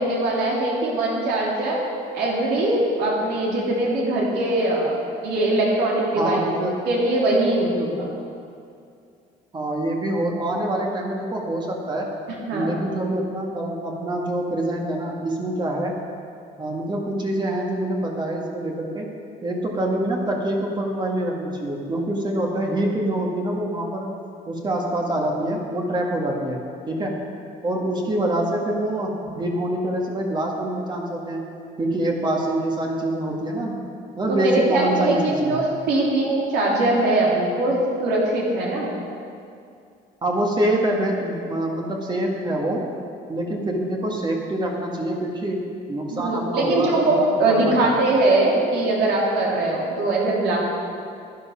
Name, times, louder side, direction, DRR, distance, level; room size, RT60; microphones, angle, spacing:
voice 1, 0.0-1.8 2.1-4.9 5.2-6.6 6.8-8.1 12.5-12.9 34.3-38.9 46.1-50.6, right 2 dB, 80° right, -4 dB, 3.2 m, -21 dB
voice 2, 6.2-6.7 9.5-12.1 12.5-16.0 16.6-19.1 19.4-24.1 24.5-26.6 26.9-27.1 27.6-31.5 31.8-33.8 34.2-35.6 40.2-42.8 43.3-45.6 45.9-47.9, right 1 dB, 25° right, -1 dB, 1.7 m, -25 dB
11.0 x 9.8 x 5.7 m, 2.4 s
cardioid pair, 110°, 17 cm